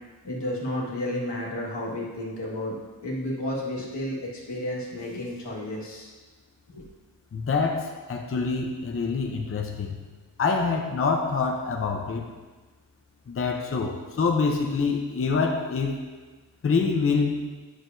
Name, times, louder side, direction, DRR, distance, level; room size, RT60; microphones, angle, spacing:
voice 1, 0.2-2.7 3.0-6.1 6.7-6.8, left 1 dB, 90° left, -5 dB, 1.7 m, -32 dB
voice 2, 7.3-10.0 10.4-12.3 13.3-16.0 16.6-17.5, left 4 dB, 35° left, 1 dB, 0.6 m, -26 dB
9.2 x 6.4 x 2.6 m, 1.3 s
wide cardioid pair, 115°, 40 cm